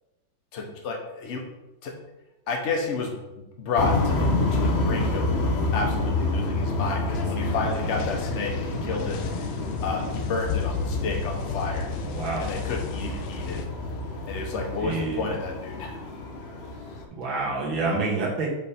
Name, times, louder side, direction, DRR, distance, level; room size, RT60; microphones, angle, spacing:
voice 1, 0.5-1.4 1.8-2.0 2.5-5.3 5.7-9.2 9.8-11.9 12.4-13.6 14.3-16.0, left 3 dB, 45° left, 2 dB, 1.1 m, -31 dB
sound 1, 3.8-17.0, left 2 dB, 65° left, 0.6 m, -28 dB
sound 2, 7.4-13.7, left 6 dB, 85° left, 1.5 m, -34 dB
voice 2, 12.0-12.5 14.8-15.2 17.1-18.5, right 3 dB, 75° right, -3 dB, 2.2 m, -28 dB
7.5 x 3.5 x 4.3 m, 1.0 s
omnidirectional pair, 2.2 m